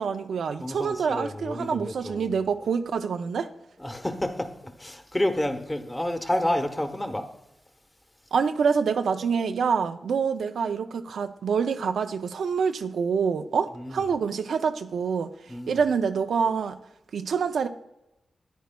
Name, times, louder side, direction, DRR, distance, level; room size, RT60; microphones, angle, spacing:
voice 1, 0.0-3.5 8.3-15.3 15.7-16.8 17.1-17.7, right 6 dB, 85° right, 0.4 m, -26 dB
voice 2, 0.6-2.3 3.8-7.3 13.7-14.0 15.5-15.8, left 1 dB, 15° left, 1.0 m, -29 dB
13.5 x 9.3 x 2.2 m
cardioid pair, 60°, 0 cm